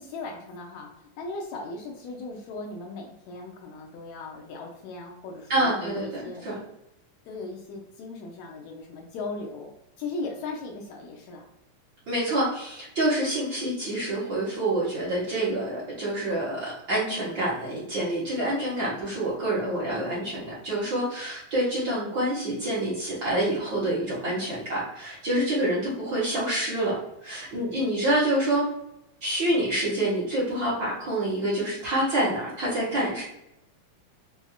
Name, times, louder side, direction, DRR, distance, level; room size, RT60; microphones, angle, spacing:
voice 1, 0.0-6.5 7.3-9.7 10.0-11.5, left 3 dB, 75° left, 1 dB, 1.8 m, -38 dB
voice 2, 5.5-6.6 12.1-26.9 27.2-28.6 29.2-33.2, right 1 dB, 55° right, -8 dB, 1.4 m, -27 dB
5.9 x 2.7 x 2.3 m, 0.84 s
omnidirectional pair, 3.5 m